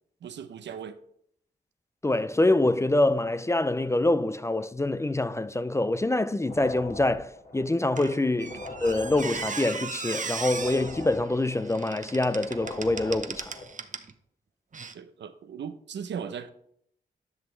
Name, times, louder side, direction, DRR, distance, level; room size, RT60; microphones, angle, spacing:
voice 1, 0.2-1.0 8.5-8.6 14.9-16.5, right 7 dB, 80° right, 0.7 m, -38 dB
voice 2, 2.0-13.5, left 2 dB, 15° left, 0.4 m, -25 dB
sound 1, 6.4-13.8, left 2 dB, 60° left, 2.7 m, -42 dB
Squeak, 8.0-14.1 14.7-14.9, right 5 dB, 45° right, 0.8 m, -37 dB
10.5 x 6.0 x 3.3 m
cardioid pair, 45°, 18 cm